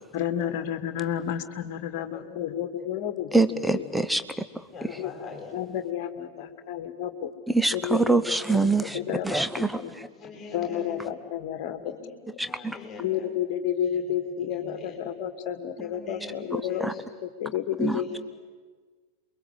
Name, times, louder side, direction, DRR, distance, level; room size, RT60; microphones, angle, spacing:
voice 1, 0.1-3.3 3.7-3.8 5.0-5.1 5.5-7.3 7.7-8.2 8.5-9.9 10.5-11.9 13.0-18.2, left 10 dB, 45° left, 9 dB, 2.0 m, -31 dB
voice 2, 2.0-2.5 2.8-2.9 4.7-5.5 6.3-6.4 7.8-8.2 8.8-9.4 10.0-11.1 11.8-13.3 13.9-14.0 14.4-15.0 15.8-16.4 16.7-17.0 17.8-18.2, left 4 dB, 15° left, 1 dB, 8.0 m, -44 dB
voice 3, 3.3-4.6 4.9-5.0 7.5-10.1 12.4-12.8 16.5-16.9 17.8-18.2, right 3 dB, 5° right, 11 dB, 1.0 m, -25 dB
28.0 x 23.0 x 8.1 m, 1.4 s
figure-of-eight pair, 90°, 0 cm